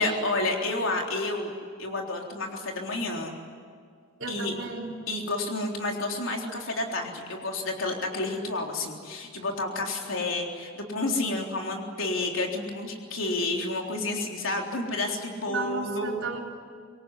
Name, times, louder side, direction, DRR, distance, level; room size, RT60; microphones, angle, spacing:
voice 1, 0.0-1.5 1.8-3.4 4.3-4.6 5.1-16.2, left 2 dB, 70° left, 1 dB, 3.8 m, -30 dB
voice 2, 4.2-4.9 15.5-16.4, right 3 dB, 65° right, -1 dB, 3.7 m, -34 dB
25.5 x 23.0 x 9.9 m, 2.1 s
head